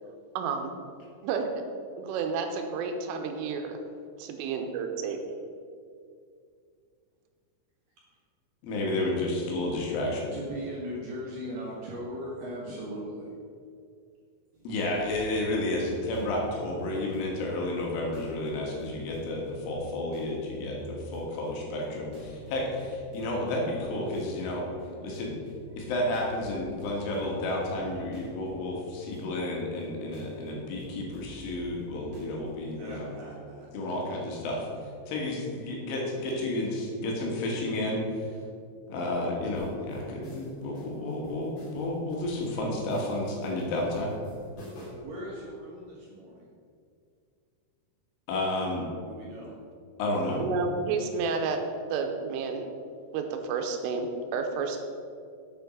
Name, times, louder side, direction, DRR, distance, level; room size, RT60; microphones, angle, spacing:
voice 1, 0.4-0.8 1.2-1.5 2.0-3.8 4.2-5.2 50.4-51.6 51.9-52.7 53.1-54.8, right 5 dB, 85° right, 5 dB, 3.4 m, -30 dB
voice 2, 8.6-10.3 14.7-24.7 25.0-25.4 25.8-33.1 33.7-34.7 35.1-38.3 38.9-44.1 48.3-48.9 50.0-50.4, left 1 dB, 75° left, -2 dB, 4.1 m, -31 dB
voice 3, 10.3-13.3 32.8-33.9 45.0-46.5 49.1-49.6, equal, 60° right, -5 dB, 2.4 m, -39 dB
sound 1, 14.5-32.7, right 2 dB, 40° right, 1.7 m, -48 dB
sound 2, 39.5-45.1, left 1 dB, 45° left, 2.5 m, -48 dB
8.5 x 7.1 x 6.2 m, 2.3 s
omnidirectional pair, 5.7 m